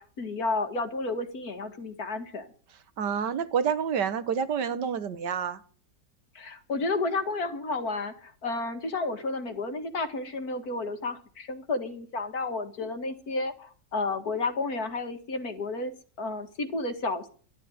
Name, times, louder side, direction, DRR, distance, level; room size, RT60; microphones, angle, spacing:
voice 1, 0.0-2.5 6.4-15.9 16.2-17.3, left 3 dB, 55° left, 2.1 m, -31 dB
voice 2, 3.0-5.6, right 7 dB, 70° right, 1.7 m, -28 dB
12.0 x 12.0 x 9.3 m
omnidirectional pair, 2.0 m